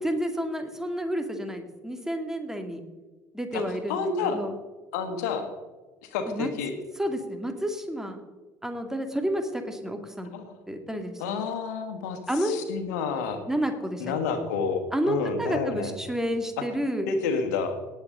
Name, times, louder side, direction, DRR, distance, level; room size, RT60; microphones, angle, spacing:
voice 1, 0.0-2.8 3.3-4.1 4.3-4.5 6.3-6.5 7.0-8.2 8.6-10.3 10.7-11.2 12.3-12.6 13.5-14.1 14.9-17.1, equal, 5° right, 5 dB, 2.3 m, -30 dB
voice 2, 3.9-4.4 4.9-5.5 6.1-6.7 10.3-10.6 11.2-13.4 14.0-15.9 16.6-16.7 17.1-17.8, left 5 dB, 75° left, 7 dB, 1.6 m, -29 dB
18.5 x 8.0 x 3.9 m, 1.2 s
hypercardioid pair, 60°, 9 cm